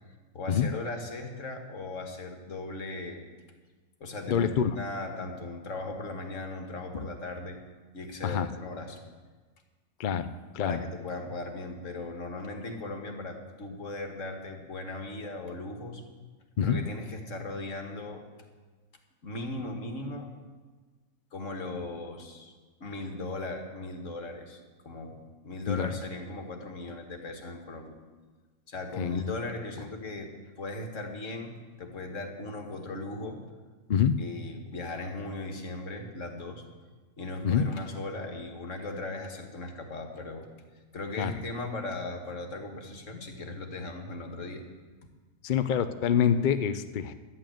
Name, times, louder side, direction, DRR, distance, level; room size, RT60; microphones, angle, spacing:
voice 1, 0.3-3.3 4.0-7.6 7.9-9.0 10.6-16.0 16.6-18.3 19.2-20.3 21.3-22.5 22.8-28.0 28.7-33.4 34.2-36.7 37.2-40.5 40.9-44.7, left 2 dB, 50° left, 4 dB, 2.0 m, -38 dB
voice 2, 4.3-4.8 6.9-7.1 8.2-8.5 10.0-10.3 10.5-10.8 16.6-16.8 25.7-25.9 29.0-29.2 33.9-34.1 37.4-37.7 41.2-41.3 45.4-47.1, left 8 dB, 70° left, 10 dB, 0.4 m, -26 dB
13.0 x 9.1 x 9.1 m, 1.3 s
omnidirectional pair, 1.7 m